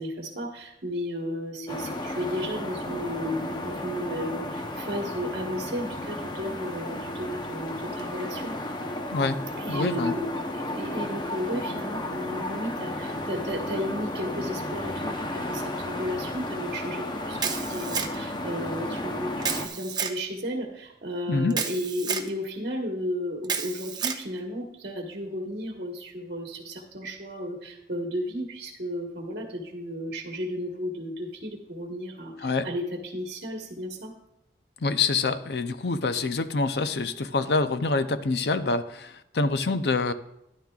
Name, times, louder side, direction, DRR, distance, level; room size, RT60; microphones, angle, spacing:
voice 1, 0.0-8.6 9.6-34.1, equal, 60° right, 0 dB, 1.3 m, -34 dB
sound 1, 1.7-19.7, left 1 dB, 25° left, 0.8 m, -33 dB
voice 2, 9.1-9.4 9.7-10.1 21.3-21.5 32.4-32.7 34.8-40.1, left 3 dB, 70° left, 11 dB, 0.6 m, -26 dB
Camera, 17.4-18.4 19.4-20.2 21.5-22.3 23.4-24.2, right 6 dB, 25° right, 0.6 m, -30 dB
13.0 x 11.0 x 2.4 m, 0.87 s
head